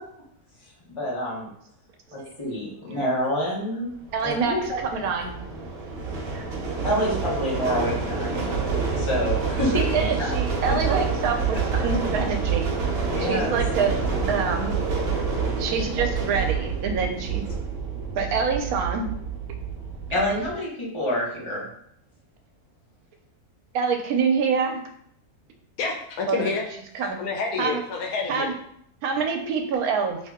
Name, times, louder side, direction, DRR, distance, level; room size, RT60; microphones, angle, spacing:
voice 1, 0.9-1.5 2.1-3.9 4.2-4.8 6.8-10.4 13.1-13.5 15.7-16.1 20.1-21.7, equal, 25° left, -5 dB, 0.8 m, -28 dB
sound 1, 4.0-20.5, right 5 dB, 55° right, 0.7 m, -28 dB
voice 2, 4.1-5.4 6.3-6.5 9.6-12.7 13.2-14.0 14.3-14.7 15.6-17.4 18.1-19.1 23.7-24.8 26.3-26.5 26.9-27.2 27.6-27.8 28.3-28.5 29.0-30.2, right 5 dB, 80° right, 4 dB, 1.1 m, -26 dB
voice 3, 25.8-26.6 27.2-28.5, left 4 dB, 80° left, 1 dB, 1.1 m, -28 dB
2.8 x 2.7 x 3.5 m, 0.70 s
omnidirectional pair, 1.5 m